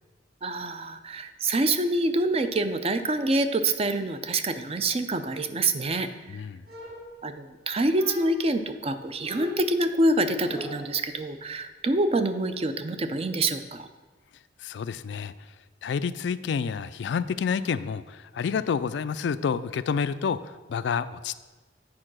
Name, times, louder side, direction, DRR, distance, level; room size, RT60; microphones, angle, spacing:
voice 1, 0.4-6.1 7.2-13.9, right 2 dB, 35° right, 9 dB, 0.5 m, -26 dB
voice 2, 6.3-6.6 14.6-15.3 15.8-21.4, left 6 dB, 70° left, 14 dB, 0.3 m, -29 dB
sound 1, 6.7-7.5 7.9-8.6 9.2-11.0, equal, 55° right, 2.4 m, -41 dB
8.7 x 4.7 x 6.1 m, 1.2 s
head